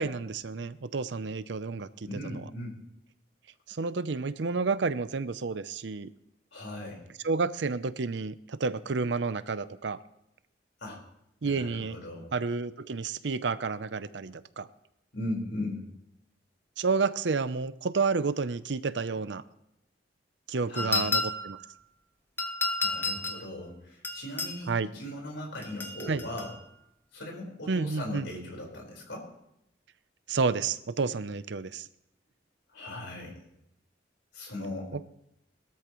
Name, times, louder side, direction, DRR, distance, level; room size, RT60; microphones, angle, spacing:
voice 1, 0.0-2.4 3.7-6.1 7.2-10.0 11.4-12.0 12.3-14.7 16.8-19.4 20.5-21.6 24.7-24.9 26.1-26.2 27.7-28.3 30.3-31.9 34.9-35.1, right 4 dB, 75° right, 15 dB, 0.6 m, -30 dB
voice 2, 2.0-2.8 6.5-7.0 10.8-11.0 11.4-12.3 15.1-15.8 20.7-21.1 22.8-26.5 27.1-29.3 32.7-33.4 34.3-34.9, left 1 dB, 80° left, -1 dB, 4.7 m, -38 dB
sound 1, 20.8-21.6 22.4-23.4 24.0-24.6 25.6-26.5, left 3 dB, 10° left, 0.9 m, -31 dB
20.5 x 13.5 x 3.1 m, 0.82 s
head